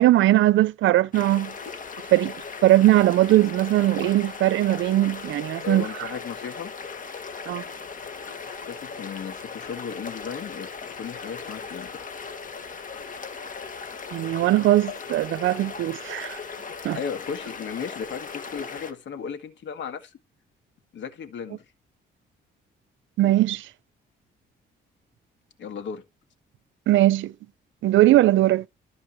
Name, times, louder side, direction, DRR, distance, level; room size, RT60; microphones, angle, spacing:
voice 1, 0.0-1.5 2.1-2.3 2.6-6.1 7.5-7.6 14.1-16.4 16.8-17.0 23.2-23.7 26.9-27.3 27.8-28.7, right 15 dB, 75° right, 0.6 m, -20 dB
sound 1, 1.1-18.9, left 5 dB, 40° left, 2.0 m, -38 dB
voice 2, 5.6-6.7 8.7-10.7 11.0-12.1 16.9-20.1 20.9-21.6 25.6-26.0, left 7 dB, 70° left, 2.0 m, -35 dB
13.0 x 5.1 x 3.1 m
cardioid pair, 90°, 20 cm